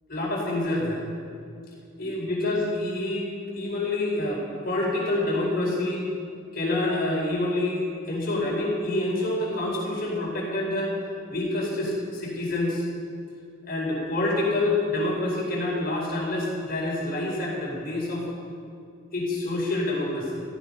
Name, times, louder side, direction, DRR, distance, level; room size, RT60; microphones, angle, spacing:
voice 1, 0.1-1.0 2.0-6.0 6.5-7.8 8.0-10.9 11.3-12.9 13.7-18.3 19.1-20.4, left 2 dB, 45° left, -3 dB, 4.8 m, -27 dB
17.5 x 14.5 x 5.4 m, 2.3 s
head